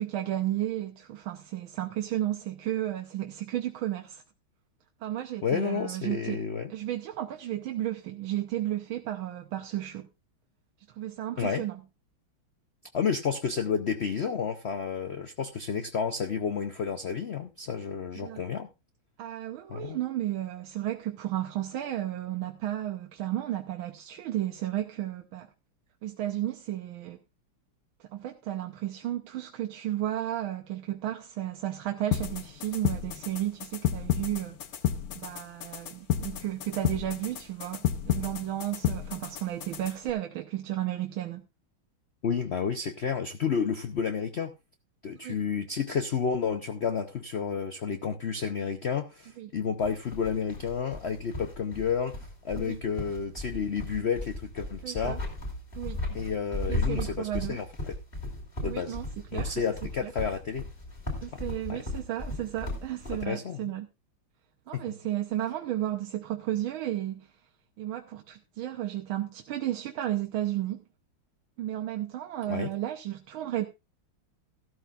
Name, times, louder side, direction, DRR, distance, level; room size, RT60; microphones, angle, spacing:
voice 1, 0.0-4.2 5.0-6.4 6.7-10.1 10.9-11.8 18.2-18.4 19.2-25.5 26.0-27.2 28.0-34.6 35.1-41.4 45.2-45.4 49.4-49.5 52.5-52.8 54.8-55.2 55.7-56.0 56.7-57.6 58.6-59.1 59.3-59.6 60.0-60.1 61.2-63.9 64.7-67.3 67.8-70.8 71.6-73.7, right 13 dB, 80° right, 1.6 m, -33 dB
voice 2, 5.4-6.7 11.4-11.6 12.9-18.7 19.7-20.0 42.2-44.5 45.0-55.2 56.1-57.9 58.6-59.0 59.3-60.7 61.7-61.8 63.2-63.7 64.7-64.8 72.5-72.7, left 6 dB, 75° left, 0.6 m, -31 dB
sound 1, 32.1-40.1, left 10 dB, 55° left, 1.1 m, -31 dB
sound 2, 49.8-63.2, left 1 dB, 25° left, 3.3 m, -36 dB
14.0 x 12.5 x 2.5 m
omnidirectional pair, 2.2 m